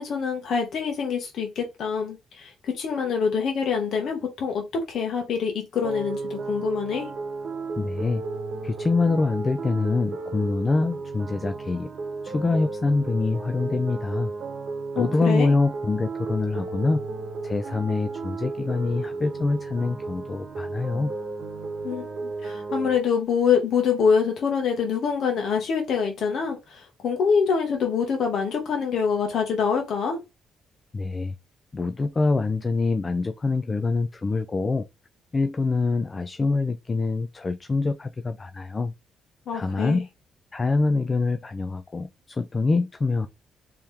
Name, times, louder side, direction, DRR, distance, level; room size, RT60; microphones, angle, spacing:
voice 1, 0.0-7.1 14.9-15.5 21.8-22.1 22.4-30.2 39.5-40.0, left 6 dB, 65° left, 1.0 m, -25 dB
sound 1, 5.8-23.0, right 3 dB, 60° right, 1.0 m, -33 dB
voice 2, 7.8-8.2 8.6-11.9 12.2-14.3 15.0-17.0 17.4-21.1 30.9-31.4 31.7-34.9 35.3-38.9 39.5-40.1 40.5-43.3, left 3 dB, 30° left, 0.3 m, -25 dB
3.5 x 3.0 x 3.3 m
cardioid pair, 90°, 0 cm